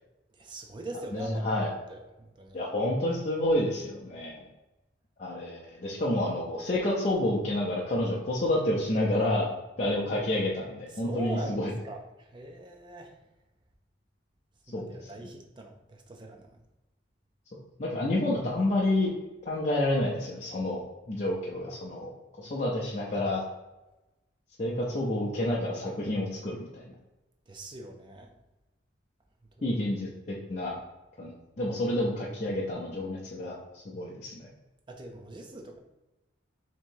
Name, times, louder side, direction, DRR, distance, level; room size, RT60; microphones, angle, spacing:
voice 1, 0.4-1.6 1.9-2.6 10.9-13.1 14.7-16.5 27.5-28.3 29.6-29.8 34.9-35.8, right 2 dB, 25° right, 3 dB, 0.5 m, -42 dB
voice 2, 1.1-1.7 2.5-4.4 5.2-9.5 9.8-11.7 14.7-15.0 17.8-19.1 19.5-20.8 21.1-22.1 22.4-23.4 24.6-26.9 29.6-30.8 31.2-31.3 31.6-33.5 33.9-34.4, left 1 dB, 40° left, -5 dB, 0.5 m, -29 dB
3.0 x 2.7 x 4.4 m, 1.0 s
head